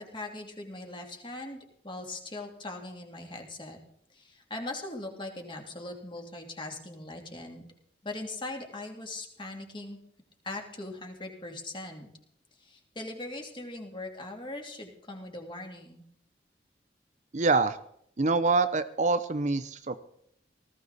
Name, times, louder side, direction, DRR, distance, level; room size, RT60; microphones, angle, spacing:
voice 1, 0.0-3.8 4.1-7.7 8.0-10.0 10.4-12.1 12.6-16.0, left 2 dB, 25° left, 2 dB, 2.6 m, -40 dB
voice 2, 17.3-17.8 18.2-20.0, right 3 dB, 40° right, 12 dB, 0.7 m, -25 dB
19.0 x 15.0 x 4.1 m, 0.70 s
head